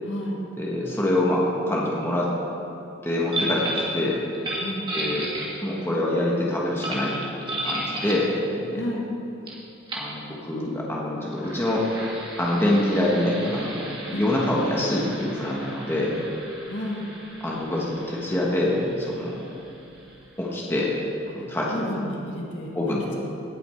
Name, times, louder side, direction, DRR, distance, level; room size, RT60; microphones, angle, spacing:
voice 1, 0.0-0.4 4.6-4.8 8.7-9.1 14.1-14.2 16.7-17.1 21.3-23.2, left 1 dB, 65° left, -2 dB, 1.8 m, -32 dB
voice 2, 0.6-2.3 3.0-4.3 4.9-5.3 5.6-7.2 7.5-8.8 9.9-11.9 12.4-16.2 17.4-19.5 20.4-20.9 21.3-21.7 22.7-23.1, left 1 dB, 10° left, -4 dB, 1.3 m, -25 dB
sound 1, 3.3-4.0 4.3-5.9 6.8-8.3 9.5-9.6 9.9-10.1 11.2-20.5, right 1 dB, 25° right, 1.7 m, -34 dB
17.0 x 7.0 x 4.4 m, 2.8 s
head